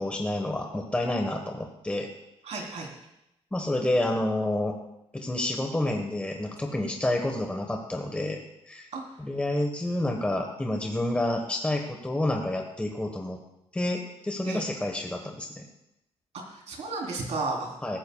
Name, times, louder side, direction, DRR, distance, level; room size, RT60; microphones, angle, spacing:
voice 1, 0.0-2.1 3.5-4.8 5.1-8.4 8.7-8.9 9.2-13.4 13.7-15.7 17.8-18.0, left 1 dB, 10° left, 2 dB, 1.2 m, -29 dB
voice 2, 2.4-2.9 8.9-9.0 14.4-14.7 16.3-18.0, right 3 dB, 75° right, 0 dB, 3.6 m, -33 dB
18.0 x 15.0 x 2.3 m, 0.86 s
wide cardioid pair, 135°, 11 cm